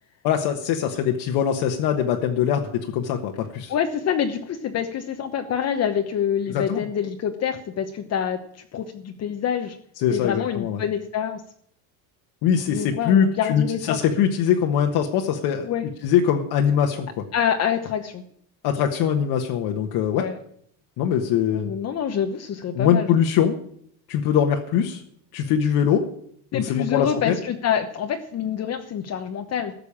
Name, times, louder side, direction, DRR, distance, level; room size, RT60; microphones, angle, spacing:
voice 1, 0.2-3.7 6.5-6.8 10.0-10.8 12.4-15.7 16.0-17.2 18.6-20.3 21.0-21.7 22.7-23.6 24.1-25.0 25.3-26.1 26.6-27.4, left 8 dB, 60° left, 2 dB, 1.4 m, -22 dB
voice 2, 3.7-8.4 8.7-9.8 10.1-11.4 12.7-14.0 15.6-15.9 17.3-18.2 20.1-20.4 21.5-23.2 26.5-29.7, left 8 dB, 35° left, 5 dB, 1.0 m, -26 dB
13.5 x 6.8 x 8.6 m, 0.65 s
cardioid pair, 145°, 43 cm